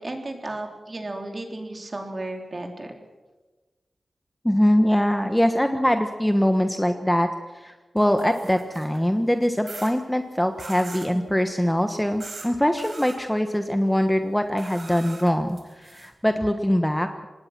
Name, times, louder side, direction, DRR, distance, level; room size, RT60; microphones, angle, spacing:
voice 1, 0.0-2.9, right 2 dB, 35° right, 3 dB, 3.7 m, -34 dB
voice 2, 4.4-17.3, equal, 5° left, 6 dB, 1.2 m, -23 dB
sound 1, 8.0-9.0 9.7-9.9 10.6-11.1 12.2-12.5 12.8-13.2 14.6-16.1, right 3 dB, 55° right, 4.3 m, -41 dB
26.5 x 19.5 x 6.0 m, 1.2 s
wide cardioid pair, 110°, 0 cm